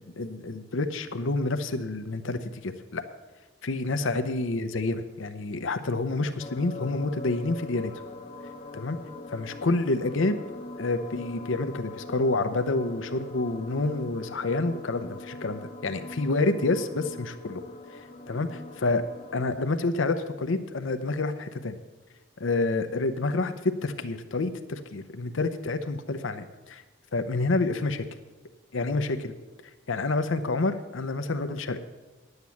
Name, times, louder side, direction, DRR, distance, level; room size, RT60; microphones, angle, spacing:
voice 1, 0.0-3.0 3.6-7.9 8.7-9.0 9.3-10.4 10.8-17.6 17.9-19.0 19.3-21.8 22.4-26.8 27.1-28.1 28.7-29.3 29.9-31.8, left 3 dB, 80° left, 9 dB, 0.7 m, -28 dB
sound 1, 6.4-19.4, left 2 dB, 30° left, 0.9 m, -42 dB
10.5 x 8.1 x 7.1 m, 1.2 s
head